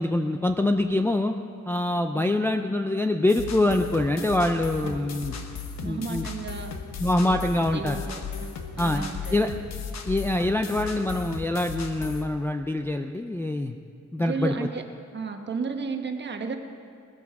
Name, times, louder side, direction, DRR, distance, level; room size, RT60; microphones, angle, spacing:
voice 1, 0.0-1.3 1.7-5.4 5.8-6.3 7.0-8.0 8.8-9.5 10.0-13.8 14.1-14.7, left 1 dB, 10° left, 4 dB, 0.3 m, -25 dB
sound 1, 3.3-12.2, left 5 dB, 60° left, 1.2 m, -36 dB
voice 2, 4.8-5.3 5.8-6.7 7.2-7.4 7.7-8.2 8.8-9.4 14.2-14.8 15.1-16.6, right 5 dB, 35° right, 5 dB, 1.1 m, -33 dB
19.0 x 13.0 x 4.7 m, 2.4 s
wide cardioid pair, 170°, 30 cm